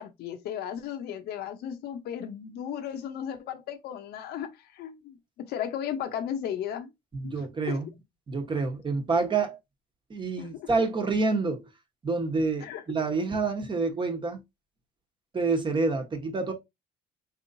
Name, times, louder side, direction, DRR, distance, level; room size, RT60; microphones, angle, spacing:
voice 1, 0.0-6.9 7.2-7.8 10.4-10.7 12.6-13.0, left 9 dB, 70° left, 0.7 m, -35 dB
voice 2, 7.1-7.9 8.3-9.6 10.1-11.6 12.0-14.4 15.3-16.5, right 3 dB, 30° right, 1.1 m, -27 dB
4.1 x 3.1 x 2.6 m
cardioid pair, 110°, 17 cm